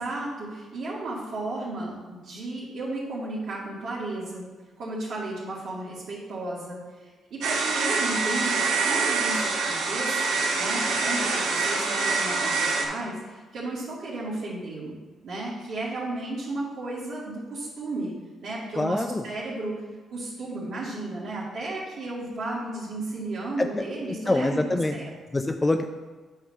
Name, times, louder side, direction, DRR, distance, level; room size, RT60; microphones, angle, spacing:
voice 1, 0.0-4.5 4.8-15.0 15.2-19.8 20.1-25.1, right 2 dB, 65° right, -8 dB, 2.2 m, -34 dB
sound 1, 7.4-12.8, right 4 dB, 85° right, 1.7 m, -25 dB
voice 2, 18.8-19.3 23.6-25.0 25.3-26.0, left 2 dB, 15° left, 6 dB, 0.5 m, -26 dB
8.8 x 3.6 x 6.5 m, 1.3 s
cardioid pair, 90°, 0 cm